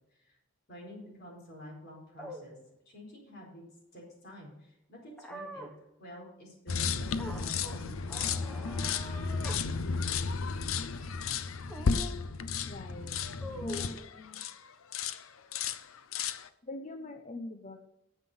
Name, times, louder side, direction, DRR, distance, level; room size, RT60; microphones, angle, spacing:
voice 1, 0.7-2.6 2.9-3.6 3.9-5.7 6.0-8.2, equal, 50° left, -1 dB, 4.3 m, -49 dB
sound 1, 2.2-2.4 5.2-5.7 7.2-7.8 8.1-9.6 10.0-10.1 11.7-12.2 13.4-13.9, equal, 5° left, 1.3 m, -43 dB
sound 2, 6.7-14.6 14.9-15.2 15.5-16.5, left 5 dB, 90° left, 0.7 m, -33 dB
voice 2, 12.7-13.2 13.6-14.5 16.6-17.8, left 2 dB, 35° left, 5 dB, 0.8 m, -42 dB
9.7 x 7.5 x 5.5 m, 0.83 s
head